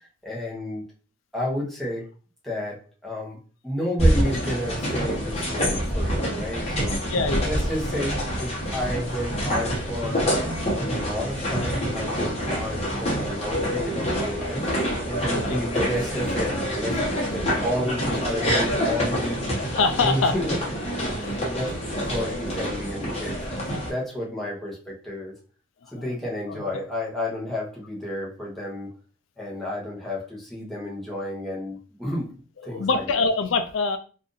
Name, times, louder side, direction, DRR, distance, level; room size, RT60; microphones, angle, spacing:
voice 1, 0.2-0.8 1.3-2.0 2.4-3.4 3.6-7.1 7.4-10.4 10.7-14.7 15.0-19.5 20.0-20.5 21.3-21.7 22.1-23.4 23.7-25.3 25.9-28.9 29.4-33.3, left 1 dB, ahead, -5 dB, 0.9 m, -31 dB
sound 1, 4.0-23.9, equal, 35° left, 1.0 m, -26 dB
voice 2, 7.1-7.5 15.3-15.6 19.5-20.3 21.1-21.4 26.0-26.1 26.5-26.6 32.7-34.0, left 4 dB, 85° left, 7 dB, 0.4 m, -25 dB
2.5 x 2.5 x 3.8 m, 0.38 s
head